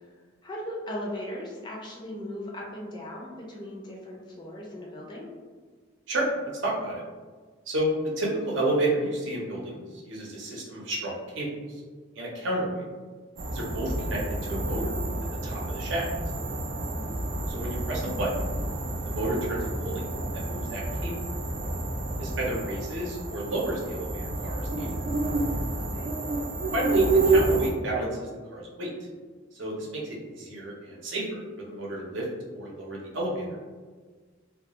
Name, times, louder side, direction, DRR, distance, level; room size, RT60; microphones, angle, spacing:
voice 1, 0.4-5.3 16.9-17.1 25.8-26.1, left 1 dB, 25° left, -3 dB, 0.4 m, -38 dB
voice 2, 6.1-7.0 7.7-11.8 12.1-12.8 13.5-15.0 15.4-16.1 17.5-18.5 19.0-20.0 20.3-21.2 22.2-24.9 26.7-28.9 29.5-32.3 32.5-33.6, right 1 dB, 75° right, -3 dB, 0.7 m, -31 dB
sound 1, 13.4-27.7, right 2 dB, 50° right, 0.3 m, -29 dB
2.3 x 2.2 x 2.8 m, 1.4 s
head